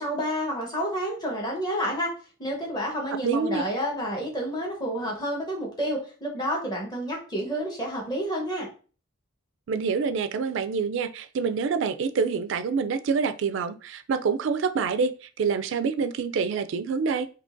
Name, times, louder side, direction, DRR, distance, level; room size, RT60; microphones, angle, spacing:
voice 1, 0.0-2.1 2.4-8.7, equal, 20° left, -2 dB, 1.0 m, -29 dB
voice 2, 3.2-3.6 9.7-17.3, right 5 dB, 70° right, 11 dB, 0.3 m, -26 dB
3.7 x 2.7 x 2.5 m, 0.38 s
head